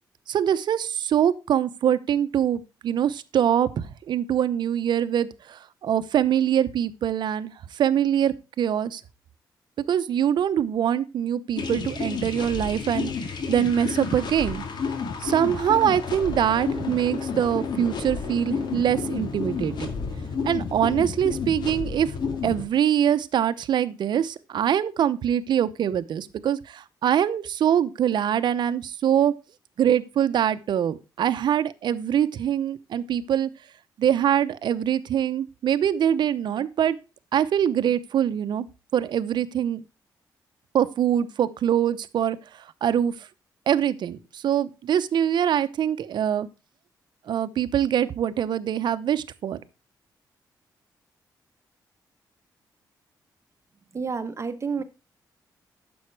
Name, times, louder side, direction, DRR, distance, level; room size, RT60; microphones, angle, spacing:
voice 1, 0.3-9.0 9.9-13.1 13.5-14.6 15.2-19.9 20.4-22.1 22.4-29.3 29.8-33.5 34.0-37.0 37.3-38.7 38.9-39.8 40.7-42.4 42.8-43.1 43.7-46.5 47.3-49.6, right 9 dB, 75° right, 0.8 m, -24 dB
sound 1, 11.5-22.6, left 5 dB, 70° left, 2.2 m, -31 dB
voice 2, 53.9-54.8, right 5 dB, 35° right, 1.2 m, -29 dB
9.5 x 7.1 x 4.7 m
cardioid pair, 80°, 8 cm